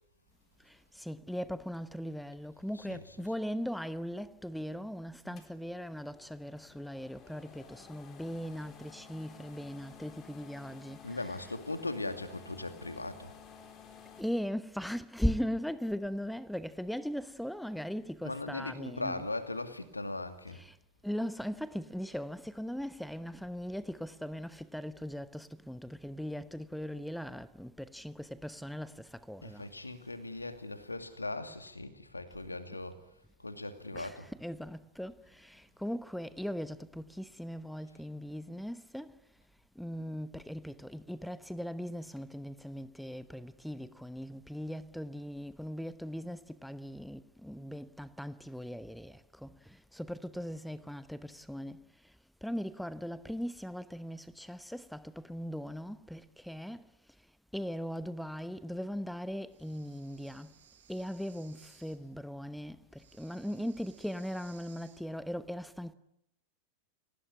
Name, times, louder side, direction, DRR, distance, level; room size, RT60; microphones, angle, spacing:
voice 1, 0.6-11.6 14.2-19.3 20.5-20.8 21.0-29.7 33.9-39.2 39.7-52.1 52.4-56.9 57.5-60.5 60.9-65.9, equal, ahead, 1.0 m, -39 dB
voice 2, 2.7-3.2 5.2-5.4 11.0-13.4 18.2-20.6 29.4-33.0 33.4-34.3, left 2 dB, 80° left, 2.4 m, -39 dB
sound 1, 5.4-14.2, left 7 dB, 30° left, 4.1 m, -54 dB
Breathing, 59.5-62.0 62.9-65.0, right 8 dB, 65° right, 7.1 m, -61 dB
29.5 x 19.0 x 10.0 m
figure-of-eight pair, 90°, 0 cm